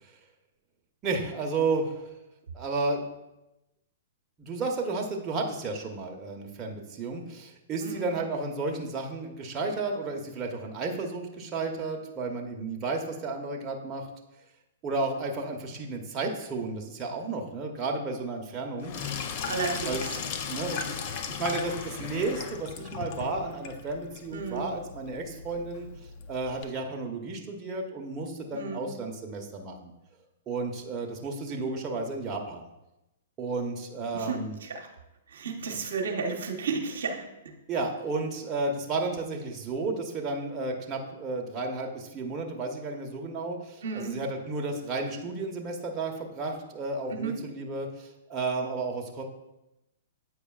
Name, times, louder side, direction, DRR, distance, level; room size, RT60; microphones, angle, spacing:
voice 1, 1.0-2.1 2.5-3.0 4.4-14.1 14.8-18.9 19.9-20.0 20.5-21.0 21.3-25.9 26.3-29.9 30.5-32.6 33.4-34.5 35.7-35.8 37.7-49.2, right 3 dB, 25° right, 1 dB, 0.9 m, -32 dB
voice 2, 7.8-8.1 19.5-20.0 24.3-24.7 28.5-28.8 34.1-34.9 35.3-37.3 43.8-44.2 47.1-47.4, right 4 dB, 75° right, 2 dB, 0.9 m, -33 dB
Sink (filling or washing), 18.8-26.6, left 6 dB, 45° left, 0.6 m, -37 dB
8.3 x 4.8 x 2.4 m, 0.95 s
hypercardioid pair, 120°, 0 cm